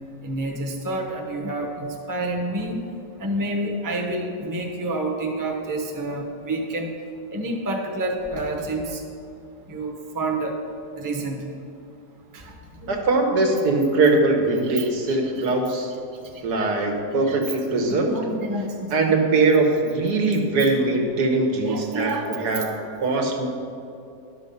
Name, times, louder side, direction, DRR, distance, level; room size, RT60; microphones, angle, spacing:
voice 1, 0.2-2.8 3.2-6.9 7.3-9.0 9.6-10.6 11.0-11.5 12.3-13.0 14.6-15.4 16.1-16.9 17.3-17.4 17.7-18.9 21.6-22.6, right 2 dB, 15° right, 1 dB, 0.7 m, -29 dB
voice 2, 12.9-15.9 16.4-18.2 18.9-22.7 23.0-23.5, right 3 dB, 85° right, 2 dB, 1.7 m, -21 dB
11.0 x 6.2 x 5.4 m, 2.6 s
omnidirectional pair, 1.7 m